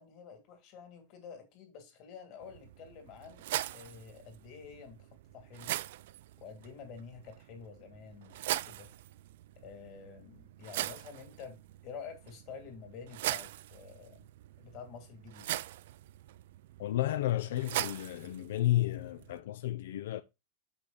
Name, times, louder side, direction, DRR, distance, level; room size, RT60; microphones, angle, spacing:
voice 1, 0.0-5.7 6.4-8.9 9.5-14.2 14.6-15.5, left 6 dB, 40° left, 2.6 m, -49 dB
sound 1, 2.4-19.4, right 14 dB, 65° right, 0.4 m, -41 dB
voice 2, 16.8-20.2, left 14 dB, 80° left, 0.5 m, -32 dB
6.6 x 5.9 x 3.9 m
supercardioid pair, 165°, 0 cm